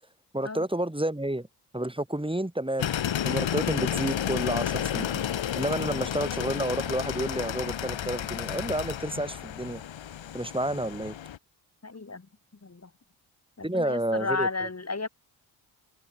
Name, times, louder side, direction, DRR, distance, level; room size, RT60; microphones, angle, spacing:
voice 1, 0.3-1.5 1.7-2.9 3.2-5.2 5.5-9.8 10.3-11.1 13.6-14.7, right 1 dB, 10° right, 6.5 m, -30 dB
sound 1, 2.8-11.4, left 10 dB, 65° left, 1.8 m, -31 dB
voice 2, 11.8-12.3 12.6-12.9 13.6-15.1, left 3 dB, 30° left, 4.4 m, -33 dB
supercardioid pair, 40°, 49 cm